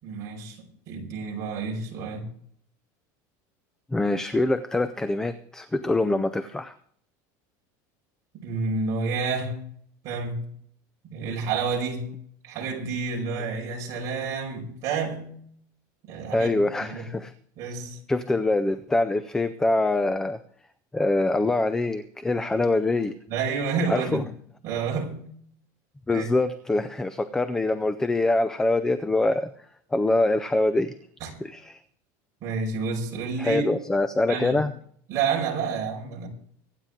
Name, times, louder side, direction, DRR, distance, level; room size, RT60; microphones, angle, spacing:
voice 1, 0.0-2.3 8.3-9.7 10.0-10.4 11.0-12.1 12.4-15.4 16.1-17.1 17.6-18.0 23.3-24.3 24.6-25.3 26.1-26.3 31.2-31.4 32.4-33.7 34.3-34.6 35.1-36.3, right 5 dB, 35° right, -1 dB, 5.0 m, -29 dB
voice 2, 3.9-6.7 16.3-17.3 18.1-20.4 20.9-23.1 23.9-24.2 26.1-29.5 29.9-30.9 31.4-31.8 33.4-34.7, left 2 dB, 5° left, 11 dB, 0.5 m, -24 dB
24.5 x 9.2 x 3.7 m, 0.63 s
cardioid pair, 175°, 9 cm